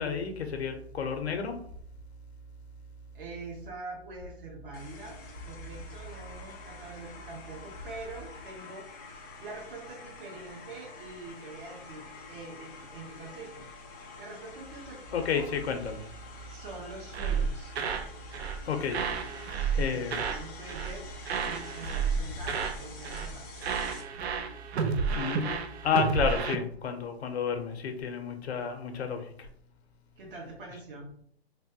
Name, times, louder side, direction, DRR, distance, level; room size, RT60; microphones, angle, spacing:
voice 1, 0.0-1.6 15.1-16.0 18.6-19.0 19.7-20.2 25.1-29.5, left 6 dB, 85° left, 6 dB, 0.7 m, -31 dB
voice 2, 3.1-5.2 5.4-13.5 14.2-15.5 16.5-17.7 19.9-21.1 21.4-23.7 30.2-31.1, right 3 dB, 55° right, -1 dB, 1.1 m, -44 dB
sound 1, 4.7-24.0, left 3 dB, 20° left, 0.4 m, -48 dB
sound 2, 17.1-18.1 18.3-18.6 18.9-20.4 20.7-21.0 21.2-22.8 23.0-23.3 23.6-26.6, right 6 dB, 80° right, 0.5 m, -31 dB
3.2 x 2.2 x 2.6 m, 0.64 s
hypercardioid pair, 160°, 32 cm